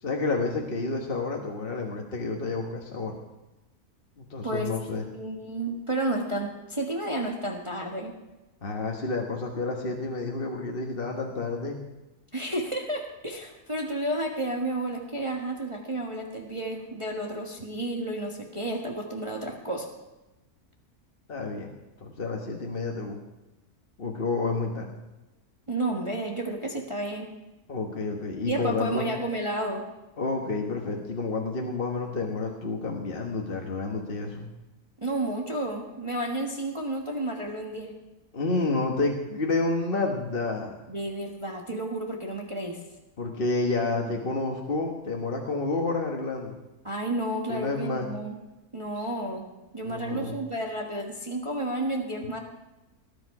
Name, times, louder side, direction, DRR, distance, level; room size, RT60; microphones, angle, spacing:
voice 1, 0.0-3.2 4.2-5.1 8.6-11.8 21.3-21.7 22.0-23.2 24.0-24.9 27.7-29.1 30.2-34.5 38.3-40.9 43.2-46.6 47.5-48.1 49.0-49.1 49.8-50.3, left 3 dB, 40° left, 1 dB, 1.5 m, -30 dB
voice 2, 5.1-8.2 12.3-19.9 25.7-27.3 28.5-29.9 35.0-38.0 40.9-42.8 46.8-48.3 48.7-49.5 49.7-52.4, right 1 dB, 20° right, 0 dB, 1.4 m, -31 dB
19.5 x 10.5 x 4.8 m, 1.0 s
omnidirectional pair, 1.6 m